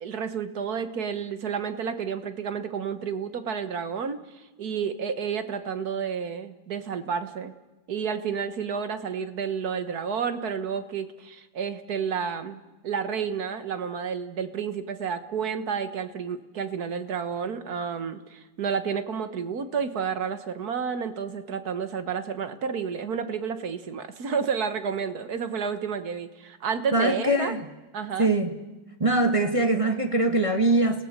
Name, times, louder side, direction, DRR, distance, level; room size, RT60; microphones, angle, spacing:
voice 1, 0.0-7.5 7.9-27.6 27.9-28.3, right 6 dB, 50° right, 10 dB, 1.6 m, -30 dB
voice 2, 26.9-27.6 28.2-28.5 29.0-31.0, right 2 dB, 20° right, 5 dB, 1.2 m, -22 dB
29.5 x 17.5 x 6.7 m, 1.1 s
omnidirectional pair, 2.2 m